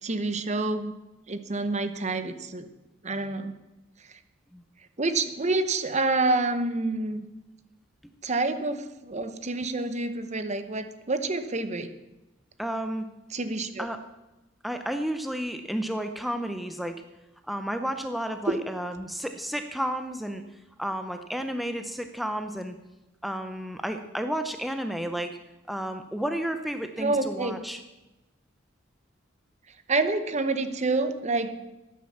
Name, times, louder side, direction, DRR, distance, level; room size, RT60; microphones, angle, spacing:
voice 1, 0.0-0.9 1.3-2.7 3.0-3.5 5.0-7.3 8.2-11.9 13.3-13.9 18.5-18.6 27.0-27.6 29.9-31.6, right 3 dB, 35° right, 10 dB, 0.9 m, -28 dB
voice 2, 12.6-13.1 13.8-14.0 14.6-17.0 17.5-20.4 20.8-22.7 23.2-25.4 25.7-27.8, equal, ahead, 7 dB, 0.6 m, -32 dB
13.0 x 9.5 x 7.2 m, 1.0 s
head